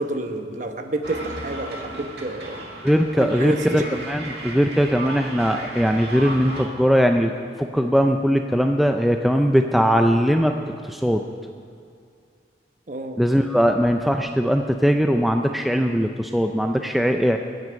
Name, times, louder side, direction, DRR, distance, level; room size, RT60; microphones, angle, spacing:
voice 1, 0.0-2.7 3.2-4.0 12.9-13.2, right 2 dB, 45° right, 5 dB, 1.1 m, -29 dB
sound 1, 1.0-6.7, right 2 dB, 65° right, 2.1 m, -35 dB
voice 2, 2.8-7.3 7.6-10.5 10.8-11.2 13.2-17.4, equal, ahead, 4 dB, 0.4 m, -20 dB
22.0 x 9.4 x 5.2 m, 2.3 s
head